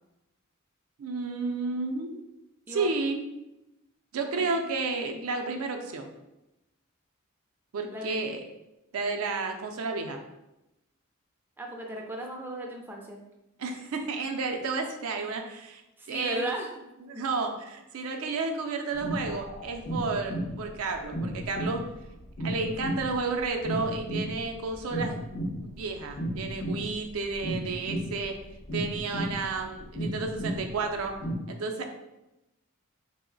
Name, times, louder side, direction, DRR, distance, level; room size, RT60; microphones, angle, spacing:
voice 1, 1.0-2.2 2.7-3.3 4.1-6.1 7.7-8.4 8.9-10.2 13.6-15.8 16.1-16.4 17.1-21.9 22.4-25.2 25.6-28.4 28.7-31.2 31.5-31.9, right 4 dB, 75° right, 3 dB, 0.4 m, -31 dB
voice 2, 11.6-13.2 16.0-17.2, right 1 dB, 10° right, 0 dB, 0.3 m, -37 dB
sound 1, 18.9-31.3, equal, 70° left, 0.8 m, -34 dB
sound 2, 19.2-19.8, left 1 dB, 45° left, 0.5 m, -45 dB
2.9 x 2.0 x 3.8 m, 0.94 s
head